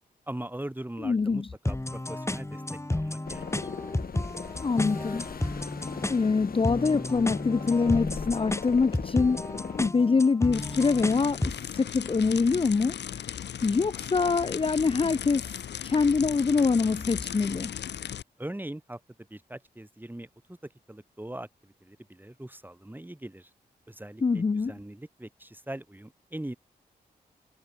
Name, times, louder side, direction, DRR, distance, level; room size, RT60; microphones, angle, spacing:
voice 1, 0.3-2.6 2.9-3.7 18.4-19.0 19.3-20.6 20.9-23.5 23.9-26.5, right 1 dB, 10° right, 2.1 m, -41 dB
voice 2, 1.0-1.5 4.6-5.3 6.1-9.4 9.8-13.2 13.6-15.5 15.8-17.7 24.2-24.7, left 4 dB, 30° left, 0.6 m, -25 dB
sound 1, 1.6-11.6, left 1 dB, 15° left, 2.5 m, -32 dB
sound 2, 3.2-9.9, left 6 dB, 55° left, 1.1 m, -39 dB
sound 3, 10.5-18.2, left 9 dB, 80° left, 0.8 m, -37 dB
cardioid pair, 60°, 18 cm